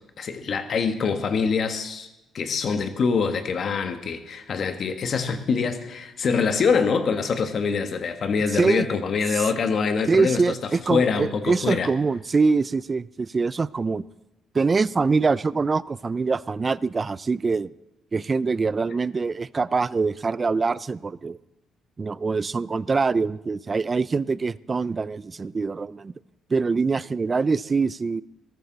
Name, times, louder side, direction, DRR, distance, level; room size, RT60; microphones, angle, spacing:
voice 1, 0.2-2.1 2.3-10.4 10.9-11.9, left 5 dB, 55° left, 8 dB, 1.7 m, -24 dB
voice 2, 8.5-8.9 9.3-9.4 10.1-14.0 14.5-17.7 18.1-21.4 22.0-26.1 26.5-28.2, right 4 dB, 30° right, 20 dB, 0.4 m, -24 dB
17.5 x 14.0 x 4.2 m, 0.97 s
cardioid pair, 90°, 0 cm